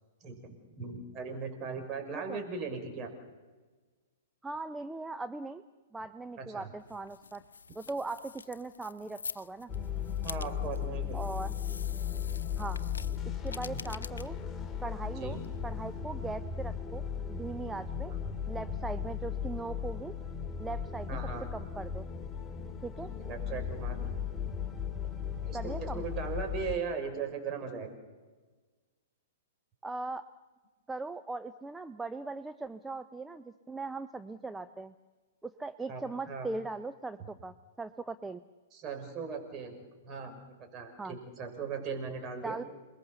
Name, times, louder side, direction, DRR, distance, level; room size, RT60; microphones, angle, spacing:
voice 1, 0.2-3.1 6.4-6.7 10.2-11.2 13.7-13.8 15.2-15.4 18.1-18.2 21.1-21.5 23.2-24.1 25.3-28.0 35.9-36.0 36.3-36.5 38.7-39.8 40.0-42.6, right 5 dB, 30° right, 5 dB, 6.3 m, -38 dB
voice 2, 4.4-5.6 5.9-7.4 7.7-9.7 11.1-11.5 12.6-12.8 13.4-14.4 14.8-18.1 18.5-20.2 20.6-21.2 21.5-22.0 22.8-23.1 25.5-26.0 29.8-30.2 30.9-34.9 35.4-38.4 41.0-41.1 42.4-42.6, right 3 dB, 10° right, 11 dB, 0.7 m, -39 dB
sound 1, 6.8-16.0, left 5 dB, 75° left, 0.9 m, -47 dB
sound 2, 9.7-26.7, left 8 dB, 15° left, 2.4 m, -36 dB
28.5 x 21.5 x 7.1 m, 1.3 s
figure-of-eight pair, 110°, 0 cm